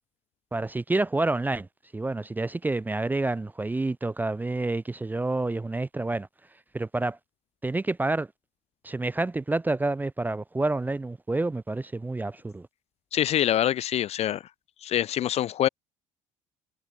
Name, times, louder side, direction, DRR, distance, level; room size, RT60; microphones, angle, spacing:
voice 1, 0.5-1.7 1.9-6.3 6.7-7.2 7.6-8.3 8.8-12.7, right 2 dB, 10° right, 0.5 m, -28 dB
voice 2, 13.1-14.4 14.8-15.7, left 11 dB, 40° left, 0.5 m, -25 dB
figure-of-eight pair, 60°, 16 cm